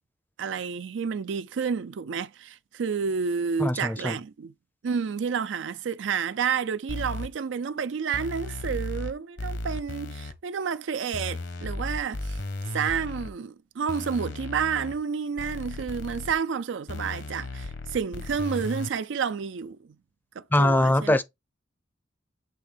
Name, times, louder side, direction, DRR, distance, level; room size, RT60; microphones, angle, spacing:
voice 1, 0.4-4.5 4.8-12.4 12.7-19.9 20.4-21.1, right 6 dB, 70° right, 0.4 m, -30 dB
voice 2, 3.6-4.1 20.5-21.2, left 1 dB, 10° left, 0.5 m, -22 dB
sound 1, 6.9-7.3 8.1-9.1 9.4-10.3 11.1-13.3 13.9-14.9 15.4-16.3 16.9-18.9, left 2 dB, 65° left, 1.1 m, -35 dB
8.2 x 3.5 x 3.4 m
head